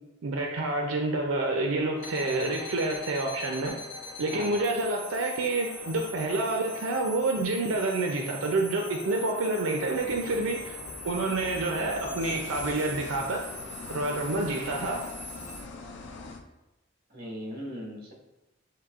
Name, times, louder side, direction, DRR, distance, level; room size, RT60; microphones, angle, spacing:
voice 1, 0.2-3.8 4.2-10.8 11.0-13.5 13.9-15.1, right 2 dB, 90° right, 2 dB, 0.5 m, -28 dB
sound 1, 1.7-16.4, left 3 dB, 85° left, 0.9 m, -48 dB
sound 2, 2.0-15.6, left 1 dB, 35° left, 0.9 m, -43 dB
voice 2, 4.3-4.7 17.1-18.1, equal, 50° right, -3 dB, 1.3 m, -38 dB
sound 3, 9.9-16.4, left 3 dB, 60° left, 0.5 m, -43 dB
7.5 x 2.8 x 2.4 m, 1.0 s
head